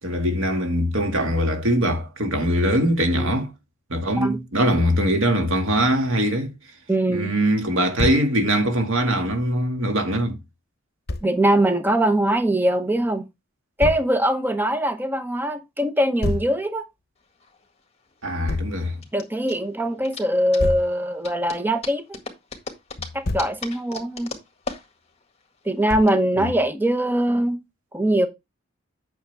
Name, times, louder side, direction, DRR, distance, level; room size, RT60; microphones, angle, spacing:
voice 1, 0.0-3.5 3.9-6.5 7.1-10.4 18.2-19.0 26.4-26.5, equal, 90° right, 2.0 m, -22 dB
voice 2, 6.9-7.3 11.2-13.2 13.8-16.9 19.1-22.2 23.1-24.4 25.6-27.6 27.9-28.3, right 1 dB, 10° right, 0.8 m, -22 dB
Thump thud, 8.0-8.3 11.1-11.3 13.8-14.1 16.2-16.5 18.5-18.8 20.6-20.9 23.0-23.6 25.9-26.2, left 2 dB, 50° left, 0.9 m, -27 dB
sound 1, 17.2-26.1, left 4 dB, 30° left, 1.7 m, -39 dB
8.6 x 6.3 x 3.4 m
head